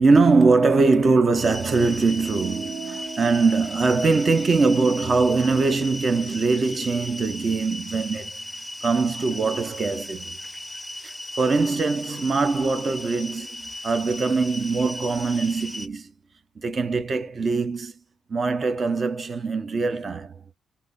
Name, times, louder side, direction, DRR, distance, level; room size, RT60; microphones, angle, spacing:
voice 1, 0.0-8.4 8.8-10.4 11.0-16.1 16.6-17.9 18.3-20.4, right 4 dB, 40° right, 0.8 m, -22 dB
sound 1, 1.4-15.9, left 1 dB, 10° left, 0.7 m, -37 dB
sound 2, 2.1-6.9, right 5 dB, 65° right, 1.7 m, -40 dB
3.7 x 2.7 x 2.5 m
cardioid pair, 90°, 0 cm